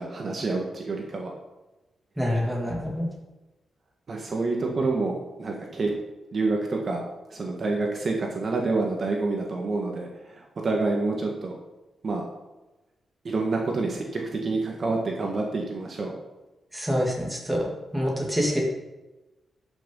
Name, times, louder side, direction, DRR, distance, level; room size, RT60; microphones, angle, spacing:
voice 1, 0.0-1.3 4.1-5.9 6.3-7.0 7.3-11.5 12.0-12.2 13.3-16.1, right 3 dB, 45° right, 0 dB, 1.6 m, -28 dB
voice 2, 2.2-3.1 16.7-17.7 17.9-18.6, equal, 5° right, -2 dB, 2.7 m, -26 dB
12.0 x 6.2 x 5.5 m, 1.1 s
wide cardioid pair, 135°, 0 cm